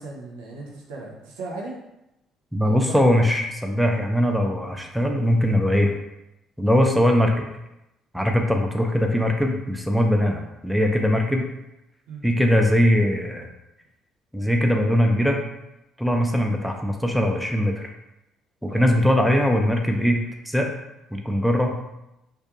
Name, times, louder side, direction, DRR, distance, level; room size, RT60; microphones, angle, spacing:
voice 1, 0.0-1.8 2.6-3.4 12.1-12.2 18.7-18.9, right 3 dB, 80° right, -3 dB, 0.6 m, -37 dB
voice 2, 2.5-5.9 6.6-7.5 8.1-11.5 12.2-13.5 14.3-15.4 16.0-17.9 18.6-20.7 21.1-21.8, equal, ahead, 2 dB, 0.4 m, -21 dB
2.3 x 2.2 x 2.8 m, 0.90 s
hypercardioid pair, 55°, 0 cm